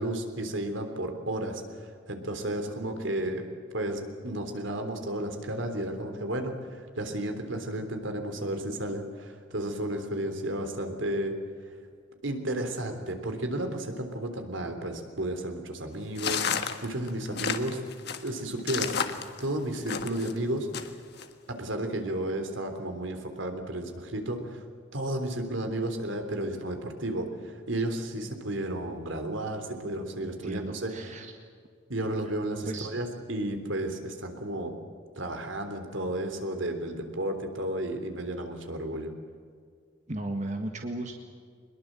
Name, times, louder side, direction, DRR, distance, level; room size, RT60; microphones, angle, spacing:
voice 1, 0.0-3.5 3.7-11.3 11.6-11.7 12.2-17.8 18.2-21.0 21.5-24.7 24.9-30.9 31.9-34.7 35.2-39.1, right 1 dB, 75° right, 6 dB, 3.4 m, -33 dB
sound 1, 16.2-20.3 20.7-21.3, left 6 dB, 55° left, 1.6 m, -31 dB
voice 2, 30.2-31.3 32.2-32.4 32.7-32.9 40.1-41.1, right 1 dB, 35° right, 3 dB, 1.8 m, -35 dB
23.5 x 21.5 x 7.6 m, 2.1 s
head